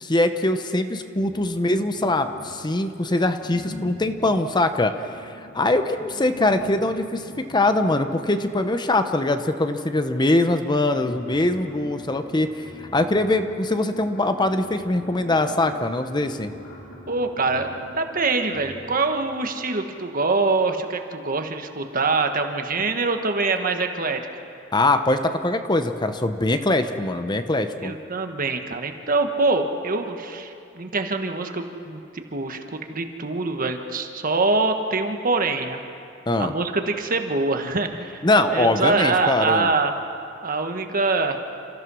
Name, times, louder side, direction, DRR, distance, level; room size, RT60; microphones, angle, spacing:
voice 1, 0.0-4.9 5.2-12.5 12.9-16.5 24.7-27.9 36.3-36.5 38.2-39.7, left 2 dB, 25° left, 8 dB, 0.8 m, -22 dB
sound 1, 1.1-2.9 3.4-9.1 10.0-10.1 10.4-19.2, left 1 dB, 75° left, 4.0 m, -43 dB
voice 2, 17.1-24.2 27.8-35.8 36.4-38.2 38.5-39.9 40.4-41.4, right 3 dB, 45° right, 6 dB, 1.4 m, -24 dB
29.0 x 14.5 x 6.3 m, 2.6 s
head